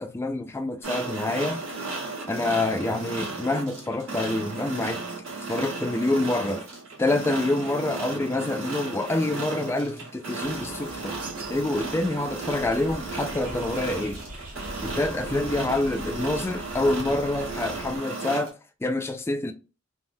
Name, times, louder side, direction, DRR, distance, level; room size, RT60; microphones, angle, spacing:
voice 1, 0.0-1.6 2.3-5.0 5.5-6.7 7.0-11.2 11.5-14.2 14.8-19.5, left 2 dB, 10° left, 0.3 m, -27 dB
sound 1, 0.8-18.5, right 3 dB, 75° right, 1.6 m, -35 dB
Bird, 10.4-16.1, right 2 dB, 45° right, 1.0 m, -45 dB
sound 2, 12.5-18.0, equal, 90° left, 0.8 m, -42 dB
3.3 x 2.0 x 2.6 m
head